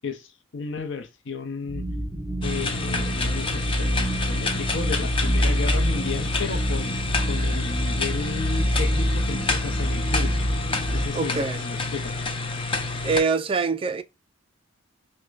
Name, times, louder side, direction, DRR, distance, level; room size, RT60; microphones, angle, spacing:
voice 1, 0.0-1.9 2.4-7.0 7.3-10.3 10.9-12.1, left 4 dB, 65° left, 0.7 m, -33 dB
sound 1, 1.7-11.1, equal, 10° right, 1.2 m, -26 dB
sound 2, 2.4-13.2, left 3 dB, 25° left, 0.6 m, -29 dB
voice 2, 11.1-11.6 13.0-14.0, right 5 dB, 25° right, 0.3 m, -24 dB
6.3 x 2.1 x 2.4 m
head